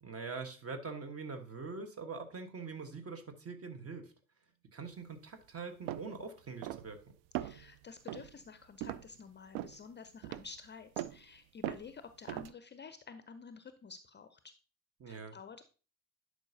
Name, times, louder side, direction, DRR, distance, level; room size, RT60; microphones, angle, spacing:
voice 1, 0.0-4.1 4.7-7.0 15.0-15.4, right 4 dB, 35° right, 7 dB, 1.3 m, -43 dB
sound 1, 5.9-6.1 6.6-7.0 7.3-7.7 8.1-8.3 8.8-9.1 9.5-9.8 10.2-10.5 11.0-11.2 11.6-11.9 12.3-12.5, right 14 dB, 60° right, 0.5 m, -39 dB
voice 2, 7.4-14.5 15.1-15.6, left 5 dB, 25° left, 10 dB, 0.5 m, -51 dB
10.5 x 4.9 x 2.7 m, 0.36 s
figure-of-eight pair, 50°, 43 cm